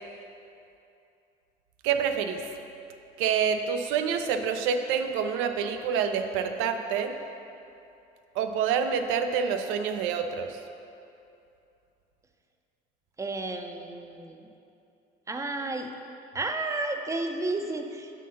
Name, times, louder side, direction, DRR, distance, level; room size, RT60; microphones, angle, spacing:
voice 1, 1.8-2.4 3.2-7.2 8.4-10.6, right 7 dB, 80° right, 7 dB, 0.5 m, -27 dB
voice 2, 13.2-14.4 15.3-15.9 16.3-18.3, right 2 dB, 15° right, 5 dB, 0.5 m, -32 dB
6.5 x 3.8 x 5.3 m, 2.7 s
supercardioid pair, 85°, 20 cm